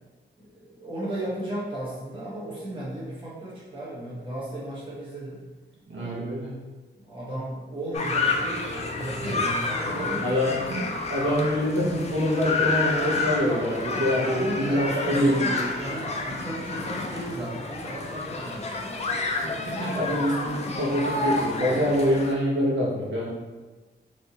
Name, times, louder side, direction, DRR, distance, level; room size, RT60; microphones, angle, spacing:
voice 1, 0.5-5.4 6.0-6.1 7.1-10.5 10.7-10.9 14.0-18.7 20.0-20.2, right 1 dB, 25° right, -8 dB, 1.0 m, -35 dB
voice 2, 5.9-6.6 9.2-9.4 9.9-15.6 19.4-23.3, equal, 85° right, -5 dB, 0.9 m, -25 dB
sound 1, 7.9-22.3, left 3 dB, 35° left, 0.3 m, -30 dB
3.4 x 2.7 x 2.8 m, 1.3 s
wide cardioid pair, 175°, 19 cm